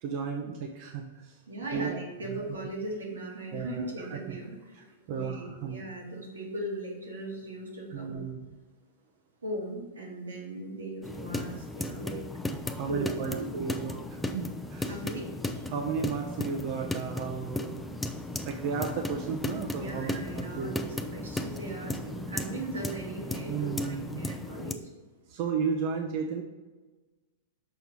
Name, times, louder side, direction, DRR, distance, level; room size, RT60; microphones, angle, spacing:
voice 1, 0.0-1.4 1.7-1.9 2.3-2.4 3.5-4.4 5.1-5.8 7.9-8.4 12.7-14.9 15.7-17.9 18.4-20.7 23.5-24.3 25.3-26.4, right 6 dB, 50° right, 2 dB, 0.8 m, -34 dB
voice 2, 1.5-8.3 9.4-12.3 12.9-13.5 14.9-15.3 15.5-15.6 19.6-24.9, right 1 dB, 90° right, -2 dB, 2.1 m, -38 dB
sound 1, 11.0-24.7, left 2 dB, 5° left, 0.6 m, -36 dB
6.3 x 4.5 x 5.5 m, 1.2 s
hypercardioid pair, 105°, 0 cm